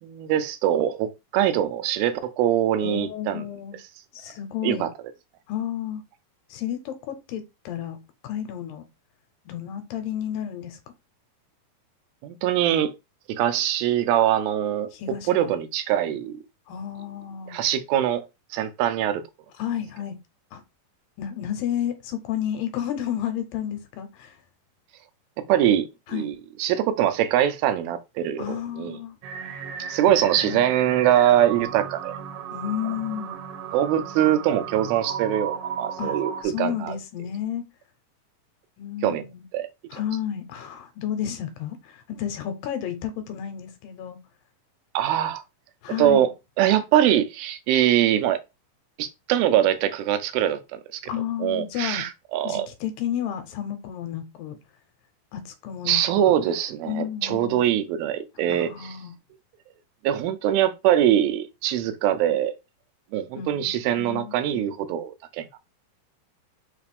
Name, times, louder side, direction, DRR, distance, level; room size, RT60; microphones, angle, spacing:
voice 1, 0.0-3.4 4.6-4.9 12.2-12.9 13.3-14.9 15.3-16.4 17.5-18.2 18.5-19.2 25.5-26.3 26.6-29.0 29.8-32.2 33.7-37.0 39.0-39.2 39.5-40.0 44.9-45.4 46.0-46.3 46.6-48.4 49.0-51.0 51.4-52.7 55.9-58.9 60.0-62.6 63.1-65.6, right 11 dB, 90° right, 2.5 m, -23 dB
voice 2, 2.8-3.8 4.1-4.9 5.5-6.0 6.5-8.0 8.2-8.9 9.5-10.8 14.9-15.5 16.7-17.6 19.6-20.2 20.5-20.6 21.2-24.4 26.1-26.3 28.4-29.2 30.0-30.1 30.4-30.7 32.5-33.3 36.0-37.7 38.8-39.5 39.9-44.2 45.8-46.3 51.1-52.0 52.4-54.6 55.3-56.3 56.9-57.7 58.5-59.1 63.4-64.7, left 10 dB, 80° left, 2.4 m, -32 dB
sound 1, 29.2-36.4, right 7 dB, 75° right, 1.9 m, -35 dB
5.7 x 2.5 x 3.4 m
omnidirectional pair, 4.2 m